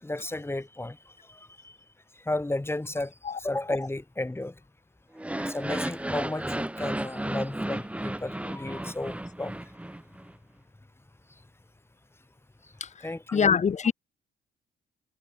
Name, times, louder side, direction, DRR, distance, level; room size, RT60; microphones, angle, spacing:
voice 1, 0.0-1.0 1.3-1.7 2.3-3.1 3.4-4.5 5.4-9.6 13.0-13.5, left 2 dB, 10° left, 6.0 m, -33 dB
sound 1, 5.1-10.3, right 1 dB, 5° right, 1.7 m, -34 dB
voice 2, 13.3-13.9, left 6 dB, 35° left, 1.0 m, -23 dB
cardioid pair, 90°, 20 cm